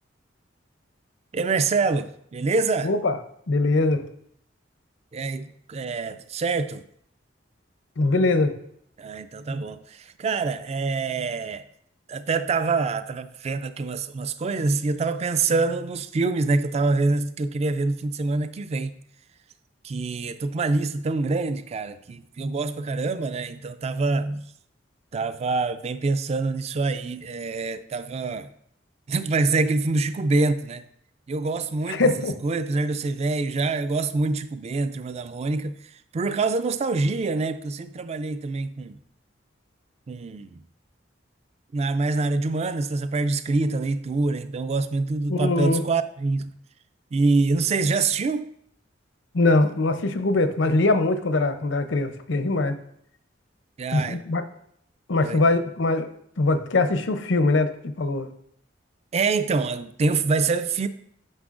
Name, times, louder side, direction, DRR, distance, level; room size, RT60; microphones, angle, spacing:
voice 1, 1.3-2.9 5.1-6.8 9.0-11.6 12.1-19.0 19.8-24.5 25.1-28.5 29.1-30.8 31.3-32.1 32.4-35.8 36.1-39.0 40.1-40.6 41.7-46.5 47.1-48.5 53.8-54.2 55.2-55.4 59.1-60.9, right 3 dB, 35° right, 0.3 m, -25 dB
voice 2, 2.8-3.2 3.5-4.0 8.0-8.5 31.9-32.3 45.3-45.8 49.3-52.8 53.9-54.4 55.1-56.1 56.4-58.3, left 2 dB, 75° left, 0.6 m, -22 dB
9.6 x 6.0 x 2.5 m
head